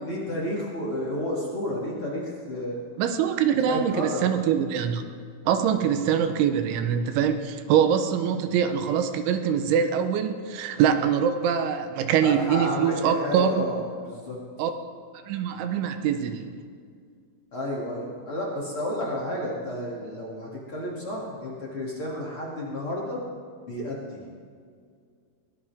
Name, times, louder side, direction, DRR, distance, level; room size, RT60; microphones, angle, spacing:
voice 1, 0.0-2.8 3.7-4.3 8.3-8.4 10.8-11.0 12.2-14.4 17.5-23.2 23.7-24.2, left 1 dB, 35° left, -5 dB, 2.7 m, -31 dB
voice 2, 3.0-5.0 5.5-13.6 14.6-14.7 15.3-16.5, right 8 dB, 80° right, 7 dB, 3.2 m, -24 dB
22.0 x 18.5 x 3.6 m, 2.1 s
omnidirectional pair, 5.4 m